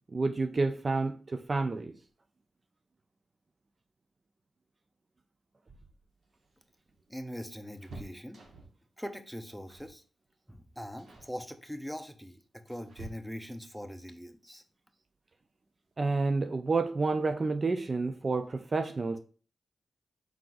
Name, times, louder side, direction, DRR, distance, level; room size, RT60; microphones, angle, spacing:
voice 1, 0.1-1.9 16.0-19.2, right 3 dB, 40° right, 0.4 m, -29 dB
sound 1, 6.2-8.9 9.7-10.0 10.3-10.6 11.0-11.4 12.2-13.7 15.4-15.5 15.9-16.0 17.2-17.6 17.9-18.0 18.3-18.5, right 2 dB, 70° right, 1.2 m, -51 dB
voice 2, 7.1-8.4 9.0-10.0 10.5-14.6, equal, ahead, 0.6 m, -42 dB
4.7 x 3.8 x 2.5 m
cardioid pair, 65°, 0 cm